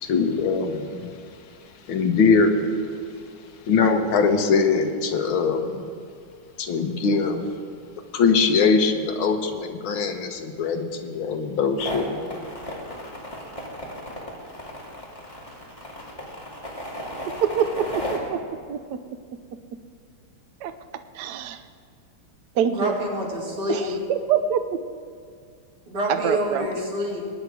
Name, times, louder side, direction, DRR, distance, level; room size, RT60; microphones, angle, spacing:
voice 1, 0.0-1.1 1.9-2.8 3.6-5.9 6.6-7.5 8.1-12.4, left 4 dB, 70° left, 5 dB, 1.8 m, -22 dB
sound 1, 11.8-18.2, left 1 dB, 15° left, 2.3 m, -34 dB
voice 2, 17.4-17.8 18.1-18.4 18.7-18.8 20.6-20.7 21.1-21.6 22.6-22.9 23.7-24.8 26.1-26.7, right 8 dB, 65° right, 9 dB, 1.1 m, -24 dB
voice 3, 22.7-24.0 25.9-27.2, equal, 90° right, -3 dB, 3.8 m, -27 dB
22.0 x 9.5 x 4.8 m, 2.1 s
omnidirectional pair, 2.4 m